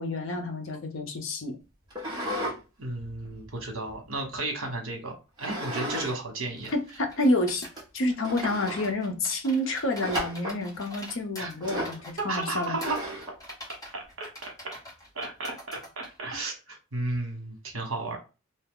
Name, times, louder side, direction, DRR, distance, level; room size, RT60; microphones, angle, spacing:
voice 1, 0.0-1.6 6.7-7.7 7.9-12.8, left 1 dB, 60° left, 0.6 m, -29 dB
sound 1, 1.9-2.6 3.0-4.4 5.4-6.2 6.5-6.6 7.2-7.3 7.8-7.9 8.2-8.9 10.0-10.6 11.6-12.0 12.8-13.3, equal, 20° right, 0.9 m, -34 dB
voice 2, 2.8-5.1 5.4-6.7 11.4-11.5 12.2-13.0 13.9-14.8 15.1-18.2, right 2 dB, 65° right, 1.1 m, -33 dB
sound 2, 6.6-16.2, left 1 dB, 15° left, 1.0 m, -45 dB
2.7 x 2.3 x 3.5 m
head